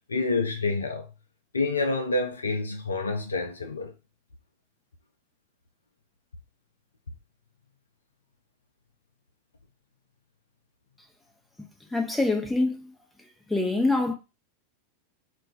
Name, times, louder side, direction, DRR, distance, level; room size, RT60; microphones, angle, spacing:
voice 1, 0.1-1.1 1.5-3.9, left 3 dB, 75° left, 0.5 m, -28 dB
voice 2, 11.9-12.9 13.5-14.1, left 2 dB, 5° left, 0.6 m, -25 dB
2.3 x 2.2 x 3.9 m
figure-of-eight pair, 90°, 0 cm